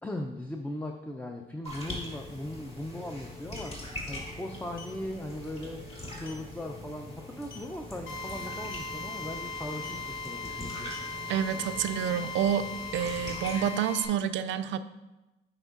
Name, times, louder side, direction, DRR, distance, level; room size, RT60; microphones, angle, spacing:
voice 1, 0.0-5.8 6.1-10.9, left 1 dB, 10° left, 3 dB, 0.4 m, -39 dB
sound 1, 1.6-13.8, left 1 dB, 30° left, 1.8 m, -42 dB
sound 2, 3.6-3.8 4.7-5.0 5.4-5.6 5.9-6.0 6.3-6.5 7.4-7.8 8.6-8.9 9.8-10.1 10.7-12.0, left 6 dB, 45° left, 1.0 m, -48 dB
Drill, 8.1-14.1, left 3 dB, 80° left, 0.8 m, -39 dB
voice 2, 11.3-12.7 12.9-14.8, right 9 dB, 70° right, 11 dB, 0.4 m, -28 dB
7.8 x 5.3 x 2.5 m, 1.0 s
cardioid pair, 90°, 20 cm